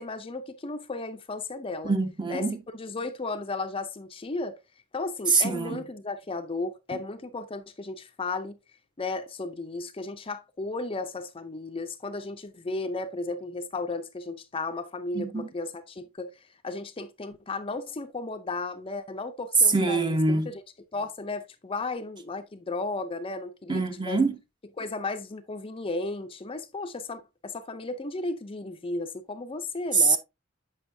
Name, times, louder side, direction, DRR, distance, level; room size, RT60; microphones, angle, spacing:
voice 1, 0.0-1.9 2.3-2.5 2.7-4.6 4.9-8.6 9.0-16.3 16.6-20.6 20.9-24.2 24.8-30.2, left 3 dB, 30° left, 0.6 m, -34 dB
voice 2, 1.8-2.6 5.3-5.8 15.1-15.5 19.7-20.5 23.7-24.4 29.9-30.2, right 3 dB, 25° right, 0.9 m, -24 dB
8.1 x 5.6 x 2.7 m
head